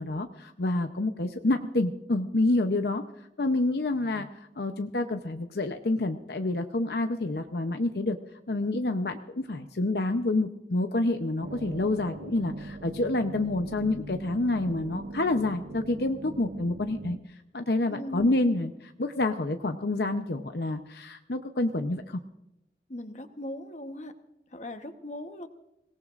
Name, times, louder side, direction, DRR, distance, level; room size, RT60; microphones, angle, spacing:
voice 1, 0.0-3.0 3.4-8.2 8.5-17.2 17.5-22.2, left 2 dB, 65° left, 6 dB, 0.8 m, -28 dB
sound 1, 11.4-17.2, right 2 dB, 65° right, 0.6 m, -41 dB
voice 2, 17.9-18.3 22.9-24.2 24.5-25.5, left 1 dB, 40° left, 7 dB, 1.1 m, -39 dB
25.0 x 18.0 x 2.5 m, 0.86 s
head